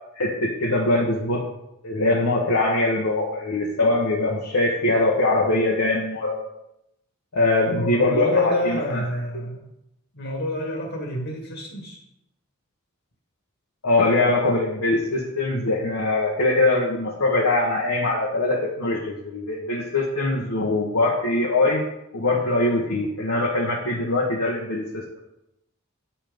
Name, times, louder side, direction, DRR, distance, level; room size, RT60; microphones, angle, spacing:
voice 1, 0.1-1.4 1.8-6.3 7.3-9.0 13.8-21.8 22.1-25.0, left 2 dB, 75° left, -3 dB, 1.3 m, -22 dB
voice 2, 7.7-9.7 10.1-12.0, left 2 dB, 60° left, 0 dB, 1.8 m, -28 dB
9.0 x 5.8 x 5.2 m, 0.83 s
head